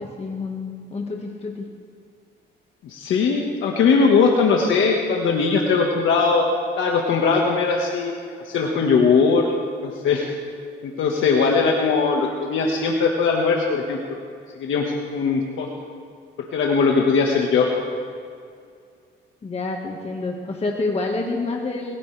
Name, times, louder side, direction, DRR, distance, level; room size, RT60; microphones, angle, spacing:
voice 1, 0.0-1.7 19.4-22.0, left 3 dB, 30° left, 0 dB, 1.7 m, -28 dB
voice 2, 2.8-6.5 6.8-9.5 9.8-10.3 10.8-14.2 14.6-15.7 16.5-17.7, left 5 dB, 75° left, 0 dB, 1.6 m, -20 dB
21.5 x 15.0 x 3.4 m, 2.2 s
cardioid pair, 90°, 20 cm